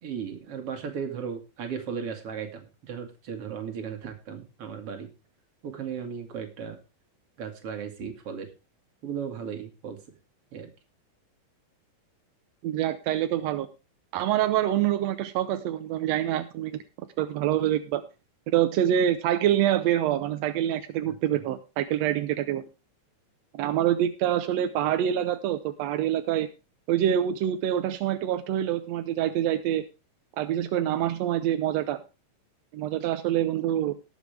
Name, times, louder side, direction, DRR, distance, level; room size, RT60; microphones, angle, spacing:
voice 1, 0.0-5.1 5.6-6.8 7.4-8.5 9.0-10.0 10.5-10.7 21.0-21.4, right 7 dB, 45° right, 5 dB, 2.8 m, -36 dB
voice 2, 12.6-13.7 14.1-16.8 17.2-18.0 18.5-22.6 23.5-26.5 26.9-29.8 30.4-32.0 32.7-33.9, right 11 dB, 75° right, 10 dB, 1.6 m, -26 dB
18.5 x 7.1 x 3.3 m, 0.29 s
omnidirectional pair, 3.9 m